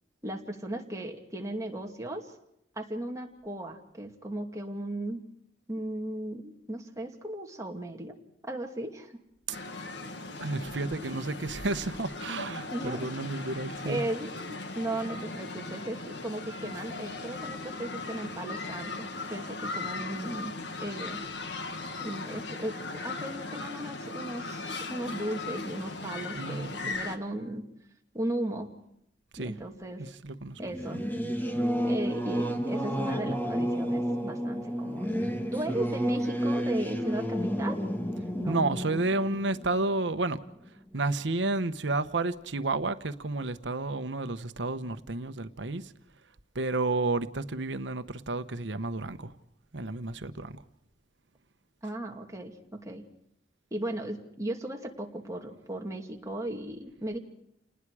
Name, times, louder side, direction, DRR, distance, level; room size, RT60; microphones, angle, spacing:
voice 1, 0.2-2.3 2.8-5.2 5.7-8.2 8.4-9.2 11.0-11.1 12.7-13.1 13.8-21.2 22.0-27.7 28.1-28.8 29.4-30.0 30.6-31.0 31.8-35.1 35.5-37.8 38.3-38.6 51.8-53.0 53.7-57.2, right 1 dB, 15° right, 2.5 m, -36 dB
sound 1, 9.5-27.2, left 3 dB, 65° left, 1.8 m, -38 dB
voice 2, 10.4-14.0 26.3-26.9 29.3-29.5 30.0-30.6 38.5-40.4 40.9-45.9 46.5-49.3 49.7-50.6, right 2 dB, 75° right, 1.1 m, -31 dB
Singing / Musical instrument, 30.6-40.7, equal, 10° left, 1.7 m, -31 dB
29.5 x 19.5 x 4.9 m
head